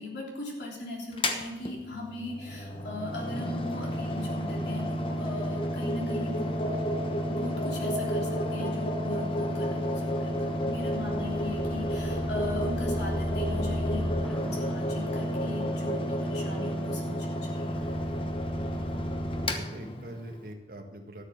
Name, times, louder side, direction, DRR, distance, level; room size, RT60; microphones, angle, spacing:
voice 1, 0.0-6.7 7.3-17.8, left 2 dB, 70° left, -2 dB, 3.3 m, -39 dB
Mechanical fan, 1.1-20.5, equal, 30° left, 1.0 m, -32 dB
sound 1, 5.1-19.2, equal, 50° left, 1.3 m, -35 dB
sound 2, 10.1-19.5, left 1 dB, 5° left, 0.5 m, -38 dB
voice 2, 18.6-19.1 19.5-21.2, right 1 dB, 50° right, 3 dB, 1.6 m, -43 dB
13.0 x 7.2 x 6.8 m, 1.2 s
head